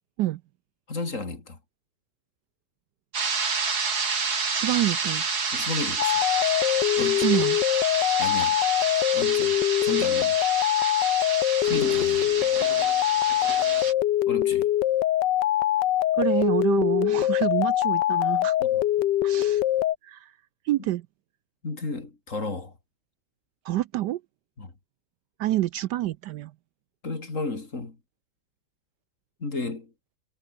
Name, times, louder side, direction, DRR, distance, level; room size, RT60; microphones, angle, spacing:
voice 1, 0.9-1.6 5.5-6.2 7.0-7.4 8.2-8.6 9.1-10.4 11.6-12.3 14.3-14.7 18.6-18.8 21.6-22.8 24.6-24.7 27.0-28.0 29.4-29.9, left 3 dB, 40° left, 3.6 m, -33 dB
sound 1, 3.1-13.9, right 5 dB, 55° right, 3.0 m, -29 dB
voice 2, 4.5-5.3 7.2-7.6 16.1-18.5 19.2-19.6 20.0-20.3 20.6-21.1 23.6-24.2 25.4-26.5, right 15 dB, 70° right, 1.1 m, -27 dB
sound 2, 6.0-20.0, left 13 dB, 70° left, 1.4 m, -23 dB
omnidirectional pair, 2.0 m